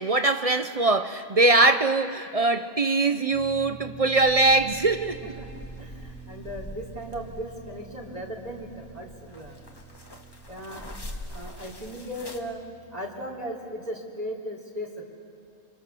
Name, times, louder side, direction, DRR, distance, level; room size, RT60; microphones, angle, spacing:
voice 1, 0.0-5.3, right 2 dB, 40° right, 0.5 m, -22 dB
sound 1, 3.3-13.4, right 7 dB, 10° right, 1.4 m, -48 dB
sound 2, 4.2-12.4, left 1 dB, 15° left, 1.8 m, -44 dB
voice 2, 5.8-9.6 10.5-10.9 11.3-12.6 12.9-15.0, equal, 25° right, 3.3 m, -37 dB
29.5 x 25.5 x 6.9 m
omnidirectional pair, 1.5 m